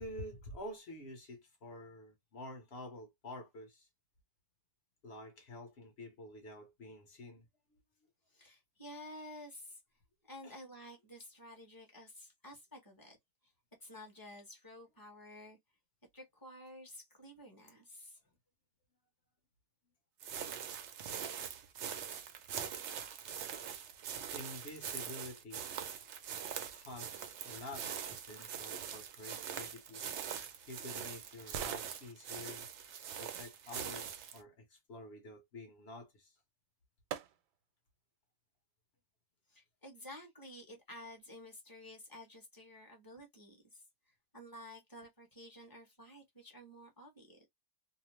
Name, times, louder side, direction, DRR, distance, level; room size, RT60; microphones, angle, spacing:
voice 1, 0.0-3.9 5.0-7.5 7.7-7.8 10.4-10.6 24.3-25.7 26.7-30.0 30.7-32.7 33.2-36.4, left 1 dB, 50° left, 0.8 m, -49 dB
voice 2, 8.3-9.8 10.3-13.2 13.8-15.6 16.1-18.2 39.5-47.5, left 1 dB, 15° left, 0.8 m, -52 dB
sound 1, 20.2-34.4, right 8 dB, 70° right, 0.6 m, -43 dB
sound 2, 30.2-34.1 36.2-36.3 37.1-37.8 38.3-38.4, right 9 dB, 90° right, 1.2 m, -49 dB
2.8 x 2.0 x 3.0 m
omnidirectional pair, 1.7 m